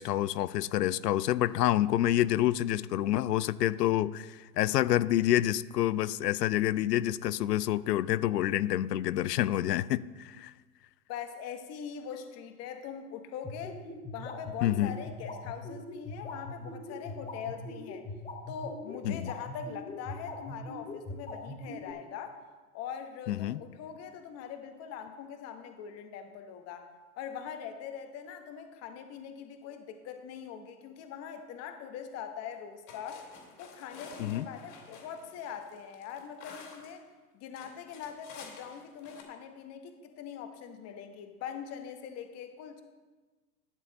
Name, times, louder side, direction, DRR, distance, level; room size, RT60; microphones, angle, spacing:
voice 1, 0.0-10.5 14.6-14.9 19.0-19.3 23.3-23.6 34.2-34.5, left 13 dB, 80° left, 18 dB, 0.5 m, -28 dB
voice 2, 11.1-13.8 14.1-18.0 18.5-22.4 22.7-26.9 27.2-33.2 33.6-37.0 37.3-42.8, left 8 dB, 30° left, 7 dB, 1.1 m, -42 dB
sound 1, 13.4-21.9, left 3 dB, 15° left, 2.2 m, -41 dB
sound 2, 32.4-32.5 32.9-37.0 37.6-39.2, left 5 dB, 50° left, 2.6 m, -50 dB
12.5 x 7.2 x 4.0 m, 1.3 s
hypercardioid pair, 115°, 48 cm